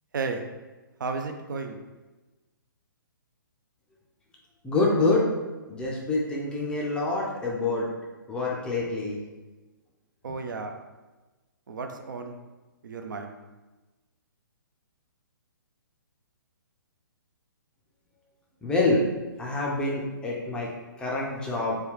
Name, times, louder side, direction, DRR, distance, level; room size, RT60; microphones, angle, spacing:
voice 1, 1.0-1.8 10.2-10.7 11.7-12.4 12.8-13.3, right 4 dB, 60° right, 5 dB, 0.4 m, -33 dB
voice 2, 4.6-5.2 5.7-7.9 8.3-9.2 18.6-19.0 19.4-20.7 21.0-21.8, left 2 dB, 10° left, -3 dB, 0.4 m, -26 dB
3.2 x 2.2 x 3.5 m, 1.2 s
figure-of-eight pair, 125°, 12 cm